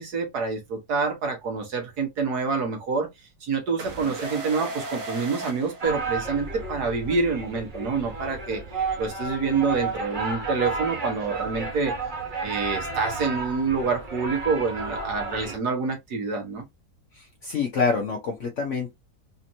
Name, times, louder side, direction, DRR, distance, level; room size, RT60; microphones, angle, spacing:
voice 1, 0.0-3.1 3.4-8.6 9.0-11.9 12.4-16.7, right 4 dB, 80° right, 1.9 m, -27 dB
sound 1, 3.8-6.6, right 2 dB, 60° right, 1.4 m, -37 dB
sound 2, 5.8-15.5, right 4 dB, 35° right, 1.1 m, -32 dB
voice 2, 17.2-18.9, left 5 dB, 55° left, 1.1 m, -27 dB
4.2 x 2.9 x 2.6 m
omnidirectional pair, 1.7 m